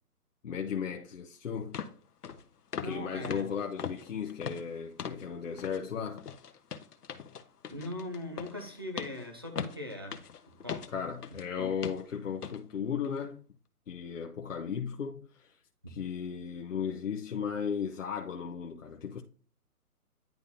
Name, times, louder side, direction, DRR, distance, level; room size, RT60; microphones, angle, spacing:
voice 1, 0.4-1.8 2.8-6.2 10.9-13.4 13.9-15.6 15.9-19.2, left 7 dB, 55° left, 1.0 m, -36 dB
sound 1, 1.1-1.2 1.7-2.0 2.2-2.4 2.7-3.0 3.2-5.3 5.6-5.8 6.2-11.5 11.8-12.1 12.4-12.6 13.0-13.2, left 7 dB, 80° left, 1.1 m, -40 dB
voice 2, 2.8-3.5 7.7-10.2 10.6-10.9 11.6-11.7 15.8-16.0, left 1 dB, 15° right, 0.5 m, -40 dB
10.5 x 3.7 x 2.6 m
hypercardioid pair, 165°, 46 cm